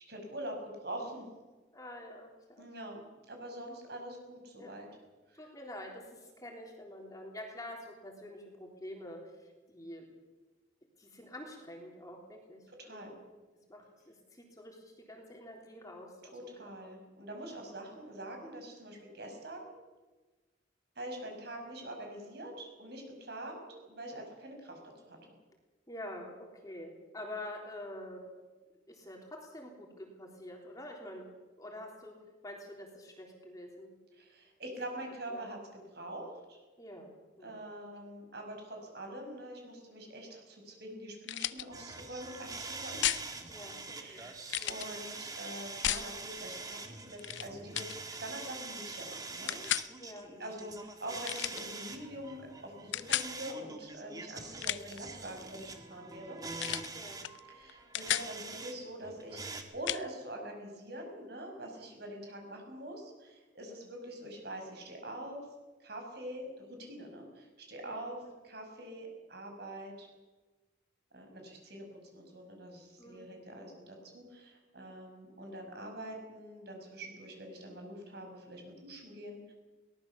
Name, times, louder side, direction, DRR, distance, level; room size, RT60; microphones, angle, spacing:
voice 1, 0.1-1.3 2.6-4.9 5.4-5.5 12.8-13.1 16.3-19.7 21.0-24.8 25.1-25.2 34.2-36.6 37.4-43.0 43.9-46.8 47.0-49.7 50.4-56.4 57.5-65.5 65.8-68.2 68.4-70.1 71.1-71.9 72.1-79.5, right 1 dB, 55° right, 2 dB, 5.6 m, -44 dB
voice 2, 1.7-2.7 4.6-4.8 5.3-10.0 11.0-13.1 13.7-16.9 17.3-17.6 25.9-28.3 28.9-31.2 31.6-32.2 32.4-33.9 35.3-35.5 36.8-37.1 37.4-37.5 43.5-44.2 44.6-44.8 50.0-50.6 56.9-57.2 63.7-63.8 67.8-68.3 73.0-73.3, left 1 dB, 20° left, 0 dB, 3.6 m, -47 dB
sound 1, 41.2-41.6 43.0-43.3 44.5-44.9 45.8-46.1 47.2-47.5 47.7-48.0 49.5-49.9 51.2-51.6 52.9-53.3 54.4-55.0 56.6-56.9 57.2-57.4 57.7-58.3 59.9-60.0, left 12 dB, 65° left, 0.6 m, -33 dB
sound 2, 41.7-58.7 59.0-59.6, right 3 dB, 20° right, 1.8 m, -45 dB
22.5 x 18.5 x 7.1 m, 1.2 s
head